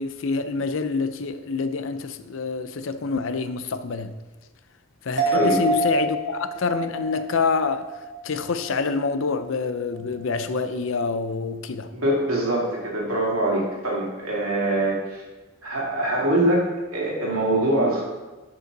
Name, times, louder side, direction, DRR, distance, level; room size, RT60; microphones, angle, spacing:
voice 1, 0.0-4.2 5.0-7.9 8.2-11.9, left 4 dB, 65° left, 0.5 m, -26 dB
sound 1, 5.2-8.9 9.2-9.3, right 2 dB, 55° right, 1.3 m, -27 dB
voice 2, 11.9-15.2 15.6-16.6 16.9-18.0, right 1 dB, 80° right, 2.5 m, -23 dB
11.0 x 5.4 x 3.9 m
head